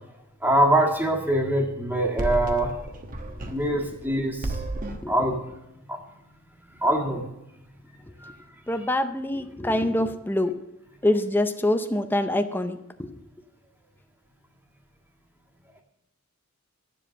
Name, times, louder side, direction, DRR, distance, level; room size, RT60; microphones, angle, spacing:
voice 1, 0.4-2.7 3.5-4.6 5.1-5.4 5.9-6.0 6.7-7.3 8.2-8.4, right 1 dB, 10° right, 2 dB, 1.7 m, -23 dB
sound 1, 1.9-4.1 4.4-5.1, right 1 dB, 40° right, 1.1 m, -33 dB
voice 2, 8.7-10.6 11.0-13.1, left 1 dB, 10° left, 8 dB, 0.6 m, -25 dB
12.0 x 7.6 x 6.4 m, 0.89 s
head